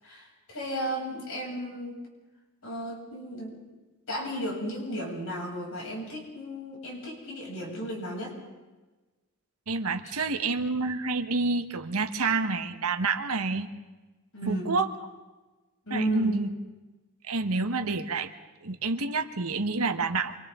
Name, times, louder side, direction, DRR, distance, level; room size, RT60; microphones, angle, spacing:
voice 1, 0.0-2.0 2.6-3.6 4.1-8.3 10.0-10.2 14.3-14.8 15.9-16.4, right 1 dB, 70° left, -2 dB, 7.4 m, -34 dB
voice 2, 9.7-13.7 14.5-14.9 15.9-16.5 17.2-18.3 18.6-20.4, right 3 dB, 85° right, 7 dB, 1.4 m, -28 dB
29.0 x 25.5 x 3.8 m, 1.2 s
head